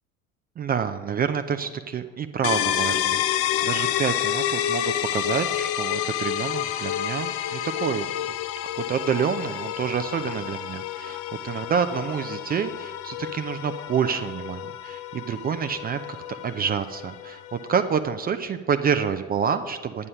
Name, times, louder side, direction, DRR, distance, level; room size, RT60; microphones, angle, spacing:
voice 1, 0.6-8.1 8.8-16.0 16.4-20.1, right 7 dB, 20° right, 8 dB, 0.5 m, -28 dB
sound 1, 2.4-18.0, left 11 dB, 35° left, 0.5 m, -29 dB
sound 2, 6.5-16.5, left 16 dB, 65° left, 1.2 m, -44 dB
9.7 x 9.7 x 5.6 m, 1.5 s
hypercardioid pair, 75°, 42 cm